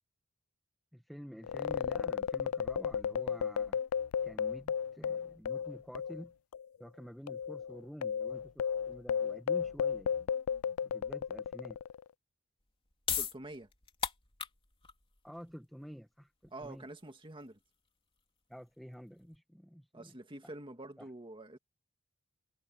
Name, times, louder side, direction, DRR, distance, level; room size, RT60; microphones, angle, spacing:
voice 1, 0.9-3.8 4.2-6.3 6.8-10.3 10.8-11.8 15.2-16.9 18.5-20.2 20.4-20.5 21.0-21.1, equal, ahead, 1.1 m, -49 dB
sound 1, 1.4-6.3 6.5-6.7 7.3-12.0, left 7 dB, 85° left, 0.3 m, -34 dB
sound 2, 12.6-19.4, left 6 dB, 25° left, 3.1 m, -41 dB
voice 2, 13.2-13.7 16.5-17.6 19.9-21.6, right 1 dB, 25° right, 2.2 m, -47 dB
head